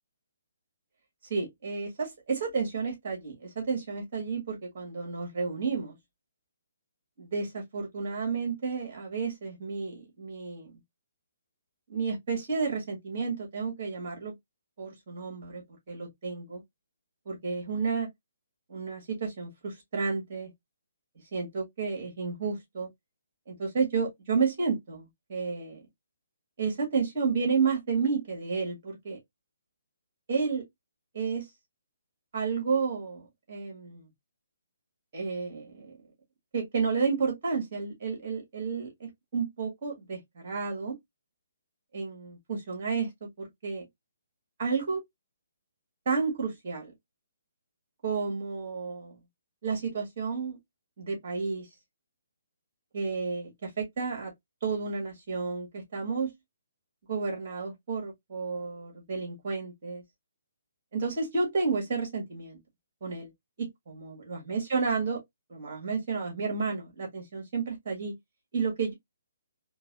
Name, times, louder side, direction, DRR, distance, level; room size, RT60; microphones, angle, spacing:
voice 1, 1.3-6.0 7.2-10.8 11.9-14.3 14.8-16.6 17.3-18.1 18.7-20.5 21.3-22.9 23.5-25.9 26.6-29.2 30.3-30.6 31.1-31.5 32.3-34.1 35.1-35.9 36.5-41.0 41.9-43.9 44.6-45.0 46.1-46.9 48.0-49.2 49.6-50.6 51.0-51.7 52.9-54.3 54.6-56.3 57.1-60.0 60.9-62.6 63.0-63.3 63.6-65.2 65.5-68.1 68.5-68.9, right 5 dB, 40° right, 2.0 m, -31 dB
3.8 x 2.7 x 2.5 m
figure-of-eight pair, 135°, 0 cm